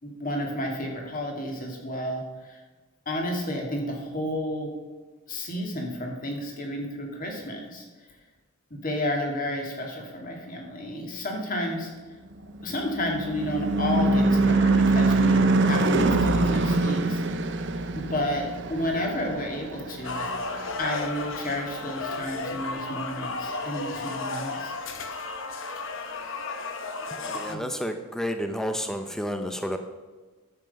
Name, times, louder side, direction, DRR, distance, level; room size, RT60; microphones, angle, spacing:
voice 1, 0.0-2.6 3.1-4.7 5.3-7.9 8.7-11.9 12.6-17.2 17.9-20.3 20.8-24.7 27.5-27.6, left 1 dB, 35° left, 0 dB, 2.2 m, -31 dB
Car passing by / Truck / Engine, 12.4-21.1, right 2 dB, 55° right, 0.7 m, -24 dB
sound 1, 20.0-27.6, left 3 dB, 55° left, 0.9 m, -33 dB
voice 2, 27.1-29.8, equal, ahead, 6 dB, 0.5 m, -31 dB
11.0 x 7.7 x 5.4 m, 1.3 s
head